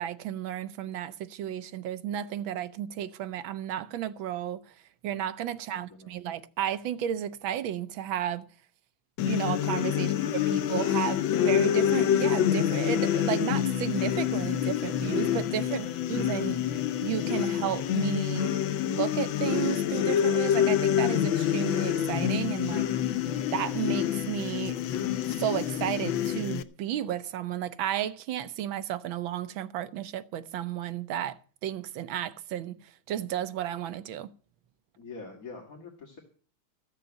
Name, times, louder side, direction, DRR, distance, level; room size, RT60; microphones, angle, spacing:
voice 1, 0.0-4.7 5.0-8.5 9.2-10.1 10.5-18.6 18.8-22.9 23.5-24.8 25.3-32.8 33.1-34.3, right 11 dB, 85° right, 1.6 m, -33 dB
voice 2, 5.7-6.2 9.9-10.6 15.6-16.0 35.0-36.2, left 3 dB, 45° left, 2.6 m, -46 dB
sound 1, 9.2-26.6, left 10 dB, 80° left, 1.6 m, -27 dB
14.5 x 6.7 x 8.7 m
omnidirectional pair, 2.1 m